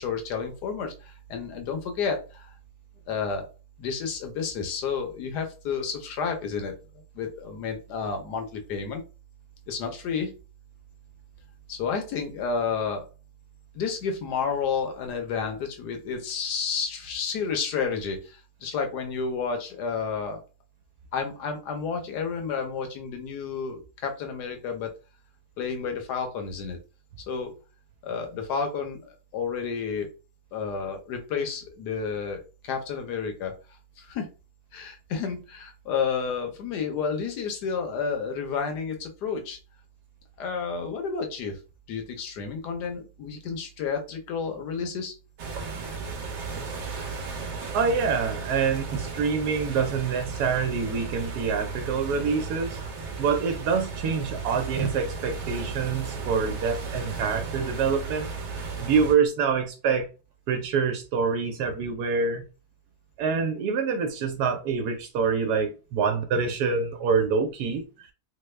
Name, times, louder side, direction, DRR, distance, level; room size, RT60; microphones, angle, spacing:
voice 1, 0.0-2.5 3.1-3.4 3.8-6.7 7.1-9.0 9.7-10.3 11.7-13.1 13.7-20.4 21.1-24.9 25.6-26.8 27.3-27.5 28.0-30.1 30.5-33.5 34.0-34.3 34.7-39.6 40.4-41.6 41.9-45.1, left 5 dB, 85° left, 1.3 m, -31 dB
sound 1, 45.4-59.1, right 4 dB, 55° right, 0.9 m, -35 dB
voice 2, 47.7-52.8 53.2-58.3 58.8-60.1 60.5-62.5 63.2-68.1, right 5 dB, 80° right, 1.1 m, -26 dB
3.3 x 2.1 x 3.1 m
omnidirectional pair, 1.7 m